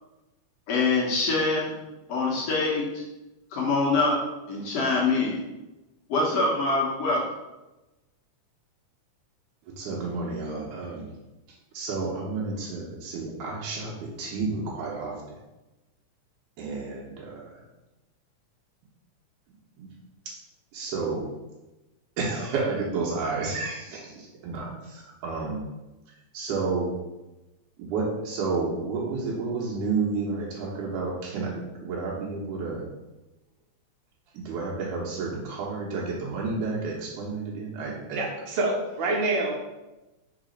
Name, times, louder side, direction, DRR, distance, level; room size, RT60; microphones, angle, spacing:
voice 1, 0.7-1.7 2.1-3.0 3.5-4.2 4.5-5.4 6.1-7.2, left 3 dB, 60° left, -4 dB, 2.0 m, -24 dB
voice 2, 9.6-11.1 11.7-15.4 16.6-17.6 19.8-19.9 20.3-20.4 20.7-21.3 22.2-25.6 26.1-26.9 27.8-32.9 34.3-38.3, right 4 dB, 85° right, -4 dB, 2.4 m, -31 dB
voice 3, 38.1-39.5, right 2 dB, 70° right, -1 dB, 2.2 m, -26 dB
4.9 x 4.0 x 5.0 m, 1.0 s
omnidirectional pair, 3.5 m